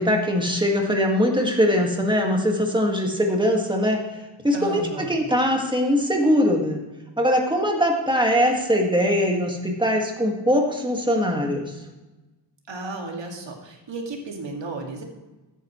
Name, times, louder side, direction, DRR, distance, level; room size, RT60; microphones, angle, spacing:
voice 1, 0.0-4.0 4.4-6.8 7.2-11.7, equal, 10° right, 1 dB, 1.8 m, -21 dB
voice 2, 4.5-5.2 12.7-15.0, right 2 dB, 70° right, 1 dB, 2.2 m, -33 dB
13.5 x 9.3 x 3.1 m, 1.1 s
wide cardioid pair, 120°, 46 cm